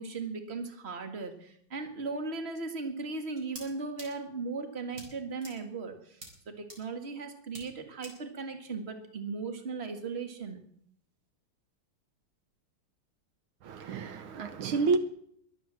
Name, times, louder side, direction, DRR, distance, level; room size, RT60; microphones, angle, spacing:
voice 1, 0.0-6.2 6.5-10.6, right 4 dB, 30° right, 1.9 m, -37 dB
sound 1, 3.4-3.7 4.0-4.1 4.9-5.1 5.4-5.5 6.2-6.3 6.7-6.8 7.5-7.6 8.0-8.1, right 1 dB, 45° right, 4.8 m, -44 dB
voice 2, 13.6-15.0, right 4 dB, 80° right, 1.9 m, -29 dB
22.0 x 8.1 x 7.6 m
omnidirectional pair, 2.3 m